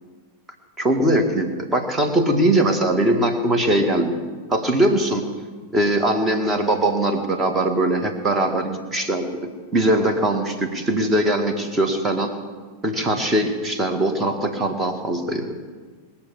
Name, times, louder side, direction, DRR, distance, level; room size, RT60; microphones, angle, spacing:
voice 1, 0.8-4.2 4.5-5.3 5.7-12.3 12.8-15.6, right 1 dB, 15° right, 6 dB, 1.9 m, -21 dB
20.5 x 7.3 x 8.5 m, 1.5 s
figure-of-eight pair, 90°, 0 cm